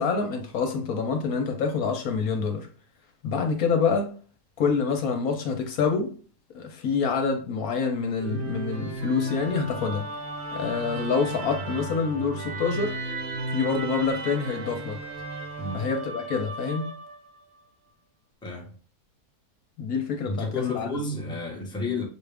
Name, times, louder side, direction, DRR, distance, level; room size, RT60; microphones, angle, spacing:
voice 1, 0.0-2.7 3.2-4.1 4.6-6.2 6.5-10.1 10.5-13.0 13.5-15.0 15.7-16.9 19.8-20.9, left 5 dB, 70° left, 1.1 m, -26 dB
Musical instrument, 8.2-17.4, right 2 dB, 50° right, 1.0 m, -35 dB
voice 2, 18.4-18.7 20.2-22.0, left 3 dB, 5° left, 0.8 m, -31 dB
6.5 x 2.4 x 3.3 m
omnidirectional pair, 1.7 m